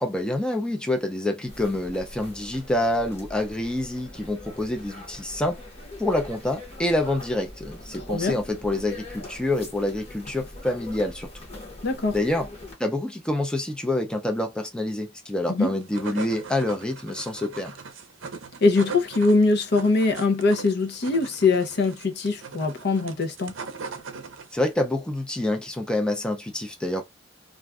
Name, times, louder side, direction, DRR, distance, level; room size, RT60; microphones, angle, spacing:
voice 1, 0.0-5.6 6.0-11.3 12.1-12.5 12.8-17.7 24.5-27.0, left 1 dB, 5° left, 0.5 m, -27 dB
sound 1, 1.5-12.7, left 1 dB, 30° left, 1.0 m, -42 dB
voice 2, 11.8-12.2 15.5-15.7 18.6-23.5, left 3 dB, 60° left, 0.7 m, -22 dB
sound 2, 15.6-24.7, right 5 dB, 75° right, 0.6 m, -40 dB
2.5 x 2.3 x 3.4 m
head